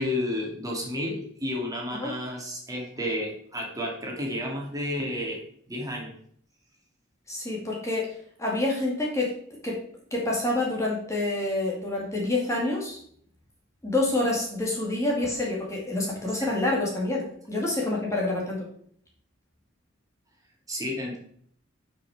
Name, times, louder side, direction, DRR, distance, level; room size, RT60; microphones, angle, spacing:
voice 1, 0.0-5.4 5.7-6.1 20.7-21.2, left 1 dB, 20° right, -1 dB, 2.6 m, -31 dB
voice 2, 7.3-9.3 9.6-9.8 10.1-13.0 13.8-17.2 17.5-18.6, left 2 dB, 15° left, -3 dB, 2.3 m, -27 dB
11.0 x 5.9 x 5.0 m, 0.62 s
head